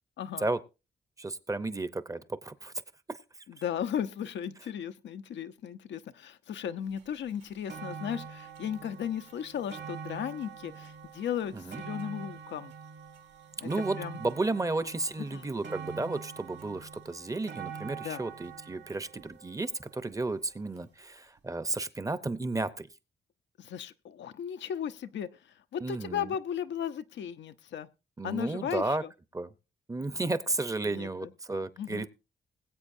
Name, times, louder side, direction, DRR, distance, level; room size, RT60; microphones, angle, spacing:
voice 1, 0.2-0.5 3.5-12.7 13.6-13.7 14.0-14.2 15.3-15.5 18.0-18.2 23.6-27.9 28.2-29.1 30.8-31.3 31.8-32.1, left 9 dB, 85° left, 0.7 m, -36 dB
voice 2, 1.2-2.7 3.1-3.2 11.5-11.8 13.6-22.9 25.8-26.3 28.2-29.0 29.3-29.5 29.9-32.1, right 2 dB, 20° right, 0.7 m, -33 dB
sound 1, 7.0-7.1 7.4-20.6 21.4-21.5, right 6 dB, 80° right, 3.0 m, -45 dB
21.0 x 8.1 x 2.6 m
cardioid pair, 110°, 18 cm